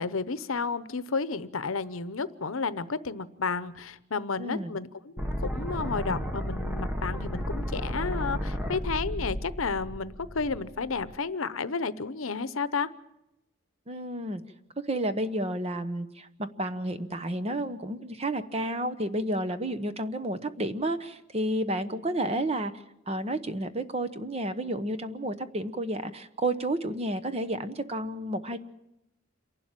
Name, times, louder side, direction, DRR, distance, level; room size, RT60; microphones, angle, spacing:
voice 1, 0.0-12.9, left 4 dB, 80° left, 15 dB, 0.8 m, -32 dB
voice 2, 4.4-4.7 13.9-14.4 14.9-22.7 23.1-28.6, right 1 dB, 30° right, 11 dB, 1.0 m, -31 dB
sound 1, 5.2-11.2, equal, 5° right, 1.4 m, -33 dB
27.5 x 12.0 x 9.0 m, 0.89 s
head